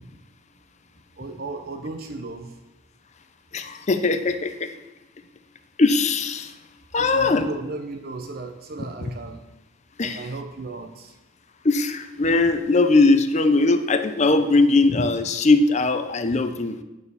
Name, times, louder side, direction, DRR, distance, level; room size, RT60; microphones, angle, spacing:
voice 1, 1.2-2.6 7.0-9.4 10.0-11.1, right 3 dB, 45° right, 5 dB, 0.6 m, -35 dB
voice 2, 3.5-4.7 5.8-6.5 6.9-7.6 10.0-10.3 11.6-16.8, left 3 dB, 35° left, 9 dB, 0.5 m, -20 dB
9.1 x 4.2 x 6.9 m, 1.0 s
head